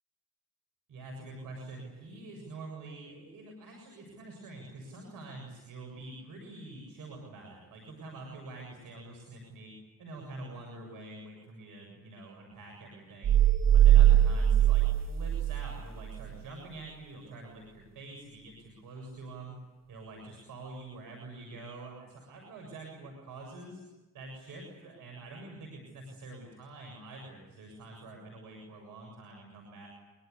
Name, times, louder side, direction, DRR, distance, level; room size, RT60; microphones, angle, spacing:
voice 1, 0.9-13.4 13.7-19.6 19.9-23.8 24.1-29.9, right 2 dB, 80° right, 2 dB, 7.4 m, -46 dB
sound 1, 13.2-15.8 16.1-16.3, right 11 dB, 55° right, 0.8 m, -21 dB
25.5 x 25.0 x 8.5 m, 1.1 s
supercardioid pair, 50°, 33 cm